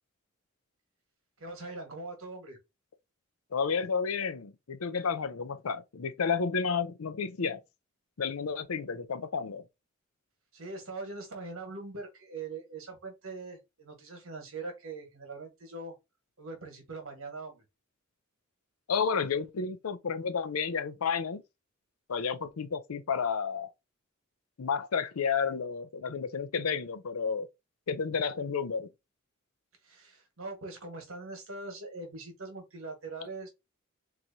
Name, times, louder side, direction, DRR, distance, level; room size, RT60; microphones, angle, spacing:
voice 1, 1.4-2.6 10.5-15.9 16.4-17.6 29.8-33.5, right 3 dB, 70° right, 1.5 m, -42 dB
voice 2, 3.5-7.6 8.2-9.6 18.9-21.4 22.1-23.7 24.6-27.5 27.9-28.9, left 6 dB, 85° left, 0.6 m, -31 dB
3.9 x 3.0 x 2.7 m
head